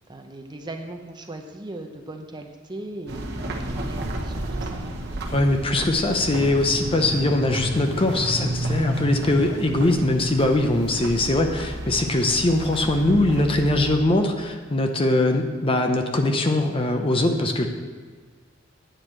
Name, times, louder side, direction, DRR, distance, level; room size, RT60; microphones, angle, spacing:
voice 1, 0.1-3.3 3.7-4.8, right 2 dB, 20° right, 4 dB, 0.6 m, -38 dB
sound 1, 3.1-14.0, right 1 dB, 55° right, 1.1 m, -31 dB
voice 2, 5.3-17.7, left 2 dB, 25° left, 5 dB, 0.7 m, -21 dB
9.0 x 4.9 x 7.4 m, 1.5 s
head